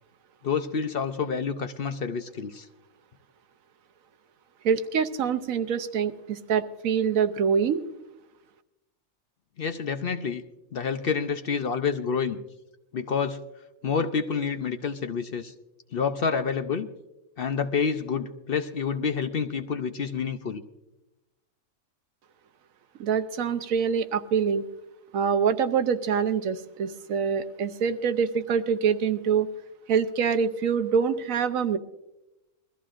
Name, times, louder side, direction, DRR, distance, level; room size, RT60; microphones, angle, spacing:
voice 1, 0.4-2.7 9.6-10.4 10.7-12.4 12.9-13.4 13.8-15.5 15.9-16.9 17.4-20.6, left 6 dB, 55° left, 8 dB, 0.7 m, -28 dB
voice 2, 4.6-7.8 23.0-24.7 25.1-29.5 29.9-31.8, right 6 dB, 85° right, 10 dB, 1.2 m, -25 dB
22.0 x 14.5 x 2.5 m, 0.95 s
omnidirectional pair, 1.4 m